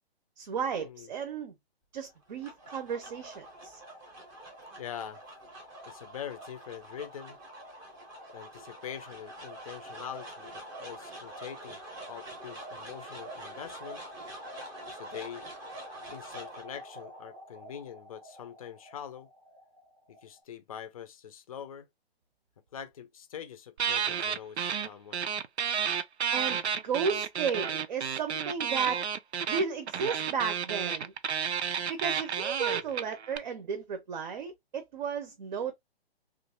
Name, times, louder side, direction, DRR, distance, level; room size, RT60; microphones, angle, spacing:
voice 1, 0.4-1.5 1.9-3.8 26.3-29.0 29.5-31.1 31.9-35.7, right 6 dB, 45° right, 0.7 m, -34 dB
sound 1, 2.1-20.4, right 1 dB, 10° right, 0.7 m, -46 dB
voice 2, 4.7-5.2 5.9-7.4 8.3-11.8 12.1-14.0 14.9-15.4 16.1-19.3 20.1-21.9 22.7-25.2 32.7-32.9, left 9 dB, 35° left, 0.5 m, -44 dB
sound 2, 23.8-24.9 25.1-33.4, right 7 dB, 85° right, 0.6 m, -31 dB
3.0 x 2.5 x 2.8 m
hypercardioid pair, 150°, 32 cm